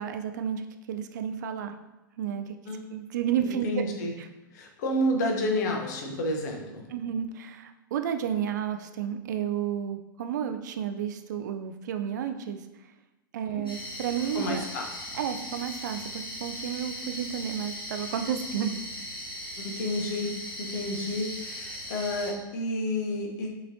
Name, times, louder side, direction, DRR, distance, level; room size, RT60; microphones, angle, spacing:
voice 1, 0.0-1.7 2.2-2.5 2.9-3.8 4.2-4.3 6.9-12.6 13.3-14.6 15.1-18.8, right 9 dB, 55° right, 8 dB, 0.4 m, -31 dB
voice 2, 3.3-4.1 4.5-6.9 13.5-13.6 14.3-14.9 19.6-20.3 20.6-23.5, left 1 dB, 50° left, 2 dB, 0.8 m, -30 dB
sound 1, 13.7-22.3, left 1 dB, 85° left, 1.1 m, -39 dB
5.6 x 3.0 x 2.6 m, 1.1 s
figure-of-eight pair, 95°, 12 cm